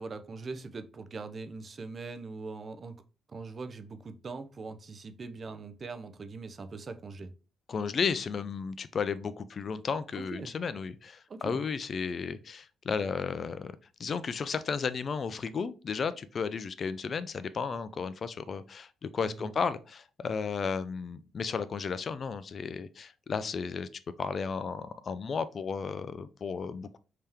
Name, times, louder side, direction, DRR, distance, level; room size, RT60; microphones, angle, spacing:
voice 1, 0.0-3.0 3.3-7.3 10.2-10.5 11.3-11.6 19.4-19.5, right 4 dB, 40° right, 0.4 m, -41 dB
voice 2, 7.7-13.7 14.0-23.9 24.2-27.0, left 5 dB, 45° left, 0.3 m, -33 dB
3.5 x 2.8 x 3.3 m
cardioid pair, 90°, 0 cm